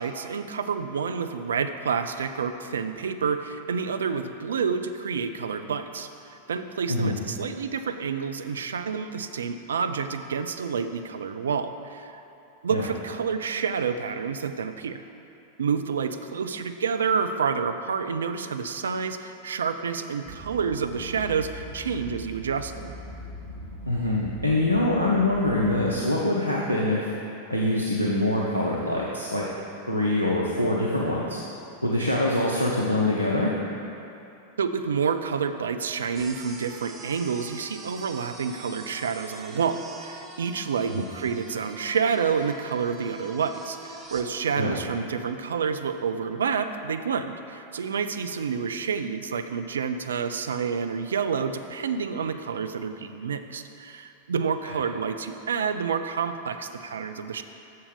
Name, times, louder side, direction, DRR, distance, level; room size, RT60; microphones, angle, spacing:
voice 1, 0.0-12.2 12.6-15.0 15.6-23.0 34.6-57.4, right 6 dB, 65° right, 9 dB, 0.4 m, -29 dB
sound 1, 20.3-25.9, right 1 dB, 50° right, 1.5 m, -41 dB
voice 2, 23.9-27.1 27.5-29.4 29.9-31.4 31.8-33.6 40.9-41.0 44.5-44.7, left 1 dB, 90° left, -4 dB, 0.7 m, -24 dB
sound 2, 36.1-44.3, right 3 dB, 25° right, 0.9 m, -44 dB
7.0 x 6.6 x 5.2 m, 2.8 s
figure-of-eight pair, 90°, 0 cm